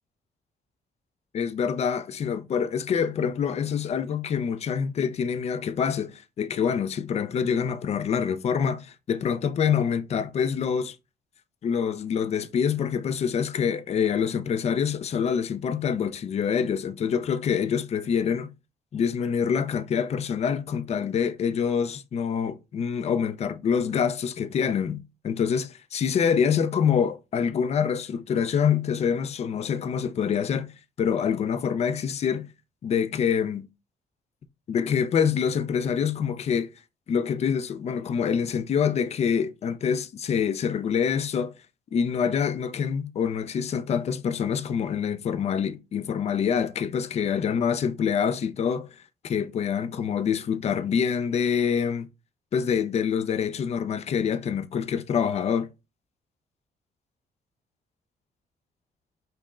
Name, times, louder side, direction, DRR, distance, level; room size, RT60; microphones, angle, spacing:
voice 1, 1.3-11.0 11.6-18.5 18.9-30.7 31.0-32.5 32.8-33.7 34.7-36.7 37.1-41.5 41.9-48.9 49.2-52.1 52.5-55.7, left 7 dB, 40° left, 0.4 m, -26 dB
5.3 x 2.0 x 3.6 m
wide cardioid pair, 150°, 17 cm